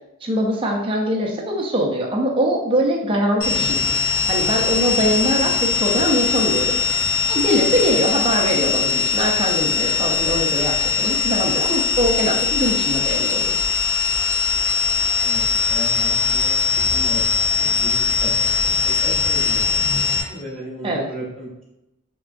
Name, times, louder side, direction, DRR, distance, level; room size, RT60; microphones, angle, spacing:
voice 1, 0.2-3.8 4.3-6.7 7.3-13.6 20.8-21.0, equal, 25° right, 0 dB, 0.4 m, -22 dB
sound 1, 3.4-20.2, left 5 dB, 60° left, 0.6 m, -21 dB
voice 2, 15.2-21.6, equal, 5° left, -7 dB, 0.8 m, -35 dB
3.5 x 2.2 x 2.4 m, 0.90 s
head